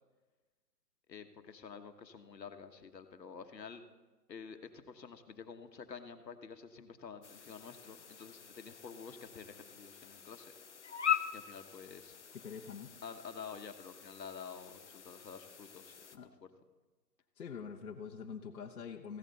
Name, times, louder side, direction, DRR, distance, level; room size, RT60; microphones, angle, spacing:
voice 1, 1.1-3.8 4.3-10.5 11.3-12.2 13.0-16.5, left 6 dB, 80° left, 7 dB, 1.4 m, -49 dB
sound 1, 7.2-16.2, left 9 dB, 45° left, 0.7 m, -42 dB
voice 2, 12.3-12.9 16.1-16.3 17.4-19.2, left 6 dB, 60° left, 0 dB, 1.2 m, -45 dB
15.5 x 11.5 x 4.1 m, 1.3 s
hypercardioid pair, 170°, 49 cm